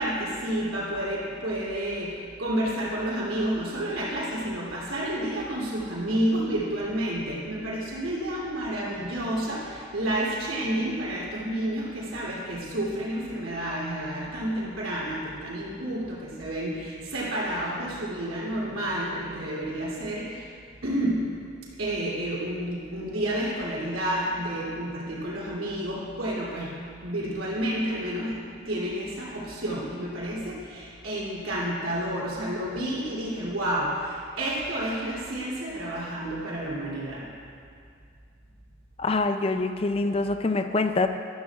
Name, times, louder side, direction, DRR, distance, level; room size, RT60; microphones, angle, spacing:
voice 1, 0.0-20.5 20.8-21.2 21.8-26.7 27.0-28.3 28.6-37.2, right 1 dB, 85° right, -6 dB, 3.0 m, -30 dB
voice 2, 39.0-41.1, left 3 dB, 30° left, 8 dB, 0.4 m, -25 dB
13.5 x 12.5 x 2.4 m, 2.3 s
head